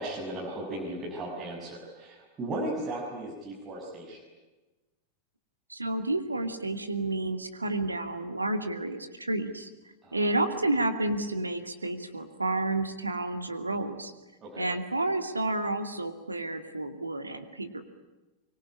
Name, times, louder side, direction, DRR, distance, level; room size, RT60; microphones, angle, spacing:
voice 1, 0.0-4.2 10.0-10.3 14.4-14.7, right 1 dB, 25° right, -4 dB, 7.0 m, -36 dB
voice 2, 5.7-9.7 10.1-14.1 14.6-17.8, right 2 dB, 80° right, 8 dB, 2.4 m, -30 dB
24.5 x 24.5 x 9.9 m, 1.1 s
figure-of-eight pair, 90°, 0 cm